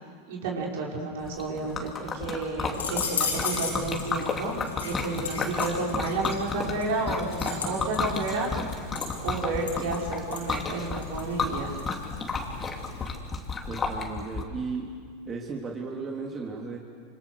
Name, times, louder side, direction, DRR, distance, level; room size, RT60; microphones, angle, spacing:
voice 1, 0.3-4.5 4.8-8.5 9.2-11.7, right 3 dB, 65° right, -2 dB, 5.8 m, -31 dB
Liquid, 1.2-14.4, left 4 dB, 25° left, 3.2 m, -32 dB
sound 1, 2.7-13.1, left 5 dB, 85° left, 6.0 m, -37 dB
voice 2, 13.7-16.8, right 4 dB, 30° right, -1 dB, 3.3 m, -35 dB
26.5 x 25.5 x 6.7 m, 2.1 s
hypercardioid pair, 90°, 0 cm